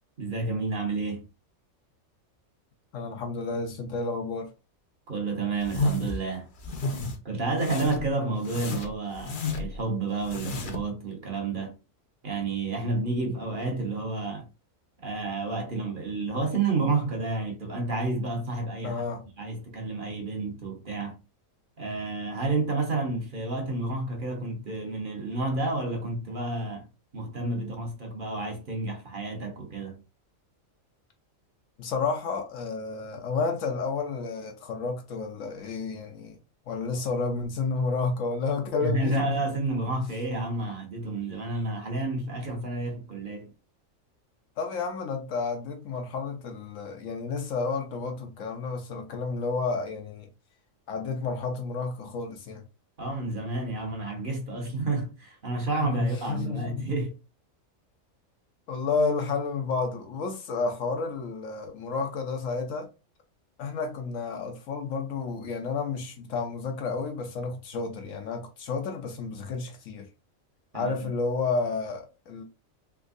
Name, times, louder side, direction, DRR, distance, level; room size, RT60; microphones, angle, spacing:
voice 1, 0.2-1.2 5.1-6.5 7.2-11.7 12.2-14.5 15.0-19.0 19.4-21.2 21.8-26.9 27.1-30.0 36.9-37.0 38.8-43.5 53.0-57.2 70.7-71.1, right 3 dB, 45° right, 1.0 m, -30 dB
voice 2, 2.9-4.5 18.8-19.2 31.8-36.4 36.7-39.4 44.6-50.3 50.9-52.6 55.8-56.8 58.7-62.9 63.6-70.1 70.7-72.4, left 4 dB, 75° left, 1.0 m, -31 dB
sound 1, 5.6-6.2 6.6-7.2 7.6-8.1 8.4-9.8 10.2-10.9, left 2 dB, 50° left, 0.7 m, -31 dB
3.5 x 3.0 x 2.4 m
omnidirectional pair, 1.4 m